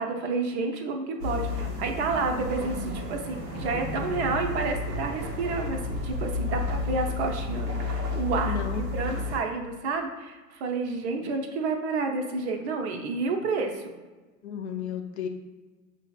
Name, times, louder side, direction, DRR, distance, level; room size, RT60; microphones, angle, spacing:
voice 1, 0.0-13.9, right 4 dB, 45° right, 4 dB, 0.6 m, -30 dB
sound 1, 1.1-6.6, left 2 dB, 10° right, 0.8 m, -41 dB
sound 2, 1.2-9.4, left 3 dB, 80° right, 0.8 m, -32 dB
voice 2, 8.5-8.8 11.2-11.3 14.4-15.3, left 7 dB, 45° left, 5 dB, 0.4 m, -33 dB
6.2 x 2.6 x 2.3 m, 1.2 s
figure-of-eight pair, 100°, 48 cm